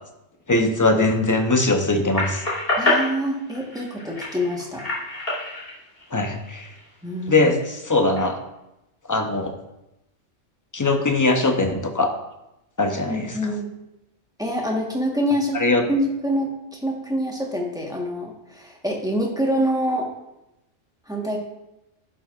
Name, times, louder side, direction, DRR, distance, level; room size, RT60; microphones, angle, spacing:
voice 1, 0.5-2.4 6.1-6.7 7.3-8.4 9.1-9.5 10.7-12.1 12.8-13.4 15.5-15.8, left 2 dB, 20° left, 4 dB, 0.5 m, -21 dB
sound 1, 2.1-6.9 7.4-8.2, left 2 dB, 35° left, 2.8 m, -27 dB
voice 2, 2.8-4.8 7.0-7.5 13.0-13.7 14.4-15.6 15.9-20.1 21.1-21.4, equal, 5° right, -1 dB, 1.1 m, -26 dB
11.0 x 6.3 x 2.4 m, 0.91 s
omnidirectional pair, 1.3 m